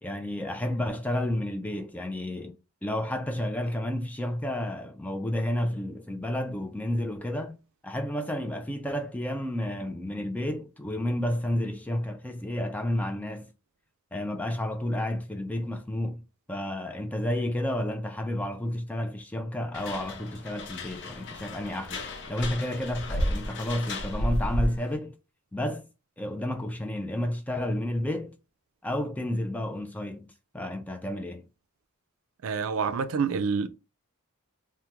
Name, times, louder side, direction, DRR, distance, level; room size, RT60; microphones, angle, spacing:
voice 1, 0.0-2.6 2.8-7.6 7.8-13.5 14.1-25.2 25.5-25.9 26.2-28.4 28.8-31.5, left 1 dB, 5° left, 0.3 m, -31 dB
sound 1, 19.7-24.9, left 1 dB, 55° left, 0.6 m, -32 dB
voice 2, 32.4-33.7, right 5 dB, 70° right, 0.4 m, -27 dB
2.9 x 2.1 x 3.4 m
head